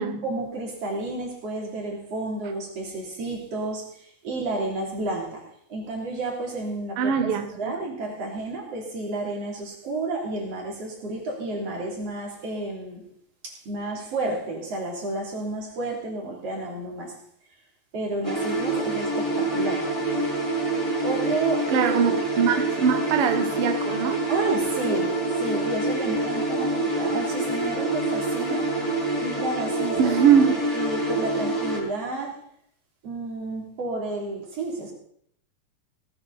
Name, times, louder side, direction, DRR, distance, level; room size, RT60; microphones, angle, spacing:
voice 1, 0.2-5.4 5.7-7.1 7.5-13.1 13.4-17.2 17.9-19.9 21.0-22.0 24.3-28.8 29.2-30.1 30.4-32.4 33.0-34.9, right 2 dB, 40° right, -1 dB, 4.0 m, -31 dB
voice 2, 7.0-7.7 21.7-24.2 30.0-30.6, right 7 dB, 75° right, 6 dB, 1.3 m, -22 dB
sound 1, 18.2-31.8, right 2 dB, 5° left, 4.3 m, -26 dB
18.0 x 12.5 x 4.2 m, 0.67 s
omnidirectional pair, 4.6 m